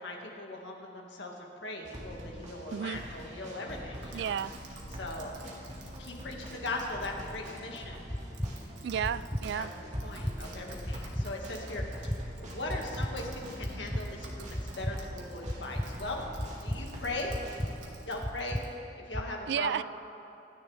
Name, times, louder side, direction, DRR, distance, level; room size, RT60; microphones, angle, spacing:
voice 1, 0.0-4.3 4.9-5.3 6.0-8.0 9.5-9.7 10.0-12.1 12.4-16.2 16.6-17.4 18.1-18.6 19.0-19.8, left 2 dB, 70° left, 0 dB, 2.0 m, -39 dB
sound 1, 1.8-17.8, equal, 40° right, 2.3 m, -44 dB
voice 2, 2.7-3.0 4.1-4.5 8.8-9.7 19.5-19.8, right 8 dB, 65° right, 18 dB, 0.3 m, -32 dB
Typing, 4.0-18.7, right 2 dB, 80° right, 1.8 m, -51 dB
sound 2, 8.1-8.5 9.0-9.4 9.9-10.3 10.8-11.3 11.8-12.2 12.7-13.1 13.6-14.0 14.5-14.9 15.4-15.9 16.4-16.8 17.3-17.7 18.2-18.6 19.1-19.2, equal, 5° left, 0.5 m, -33 dB
25.0 x 10.0 x 3.5 m, 2.8 s
head